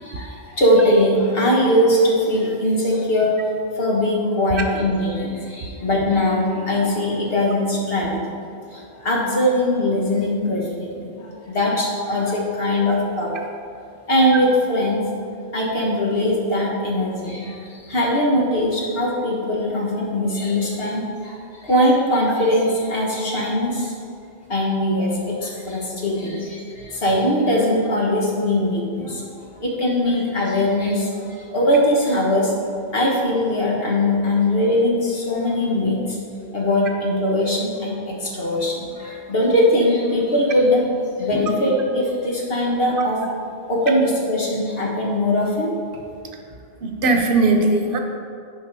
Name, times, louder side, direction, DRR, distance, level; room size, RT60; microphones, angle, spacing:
voice 1, 0.0-3.4 3.7-8.2 8.7-13.5 14.1-15.0 15.5-23.9 24.5-29.3 29.6-32.5 32.9-36.2 36.5-40.8 41.2-43.2 43.7-45.7, left 1 dB, 65° left, -3 dB, 1.7 m, -21 dB
voice 2, 46.8-48.0, right 2 dB, 60° right, 4 dB, 1.0 m, -19 dB
11.0 x 4.6 x 4.8 m, 2.5 s
omnidirectional pair, 1.0 m